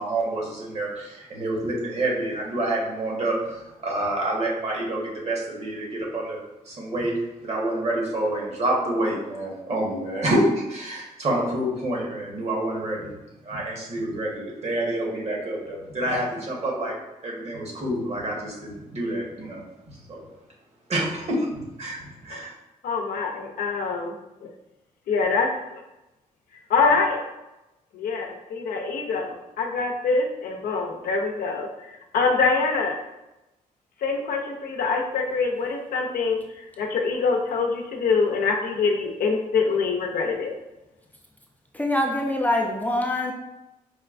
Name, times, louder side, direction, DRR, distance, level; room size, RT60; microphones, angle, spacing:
voice 1, 0.0-6.4 6.6-7.1 7.4-10.4 10.7-13.1 13.4-16.9 17.2-20.2 20.9-21.5 21.8-22.5, right 1 dB, 45° right, -3 dB, 1.2 m, -28 dB
voice 2, 22.8-24.1 24.4-24.5 25.1-25.8 26.7-27.2 27.9-33.0 34.0-40.5, left 4 dB, 80° left, 1 dB, 0.6 m, -25 dB
voice 3, 41.7-43.3, left 1 dB, 10° left, 0 dB, 0.5 m, -24 dB
4.8 x 2.2 x 2.5 m, 0.96 s
cardioid pair, 80°, 15 cm